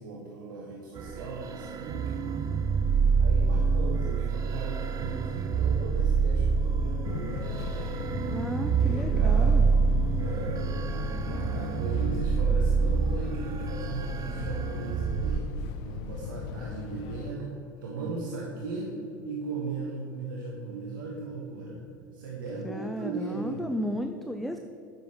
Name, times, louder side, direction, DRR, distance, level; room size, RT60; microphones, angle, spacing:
voice 1, 0.0-2.2 3.2-7.5 8.8-9.6 10.1-15.5 15.8-18.9 19.2-21.8 22.1-23.8, right 3 dB, 80° right, -3 dB, 1.4 m, -37 dB
sound 1, 1.0-15.4, right 5 dB, 35° right, 0.7 m, -27 dB
Fixed-wing aircraft airplane, 7.0-17.3, left 9 dB, 55° left, 0.5 m, -37 dB
voice 2, 8.3-9.7 22.6-24.6, equal, ahead, 6 dB, 0.5 m, -34 dB
9.9 x 7.0 x 5.2 m, 2.9 s
hypercardioid pair, 85°, 11 cm